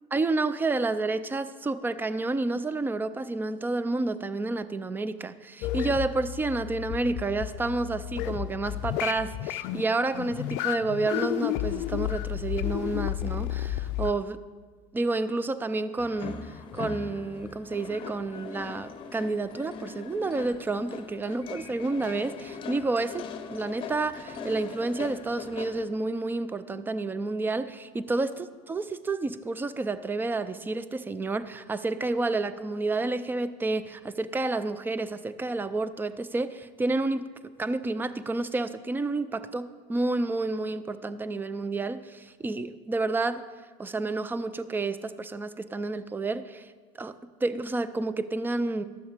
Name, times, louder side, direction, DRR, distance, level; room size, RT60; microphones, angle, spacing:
voice 1, 0.1-14.4 14.9-16.5 16.7-37.3 37.6-43.5 43.8-46.7 47.0-48.8, right 3 dB, 15° right, 14 dB, 0.5 m, -30 dB
sound 1, 5.6-14.1, left 14 dB, 65° left, 0.4 m, -32 dB
sound 2, 16.0-25.8, left 5 dB, 35° left, 0.8 m, -40 dB
12.0 x 7.0 x 5.0 m, 1.5 s
supercardioid pair, 105°, 15 cm